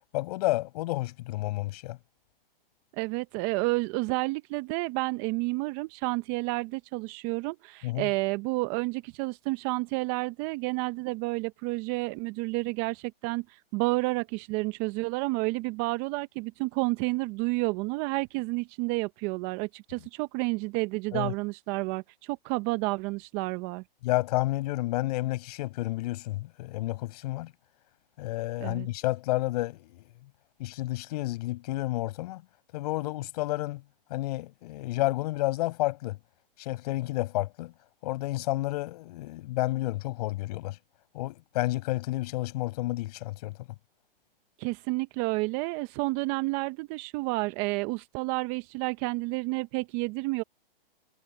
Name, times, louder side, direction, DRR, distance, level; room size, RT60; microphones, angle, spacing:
voice 1, 0.1-2.0 7.8-8.1 21.1-21.3 24.0-27.5 28.2-30.1 30.6-32.4 32.7-33.8 34.1-36.2 36.6-37.7 38.0-40.8 41.1-43.6, left 18 dB, 45° left, 6.1 m, -30 dB
voice 2, 2.9-23.8 28.6-28.9 44.6-50.4, right 24 dB, 25° right, 0.6 m, -30 dB
hypercardioid pair, 140°, 29 cm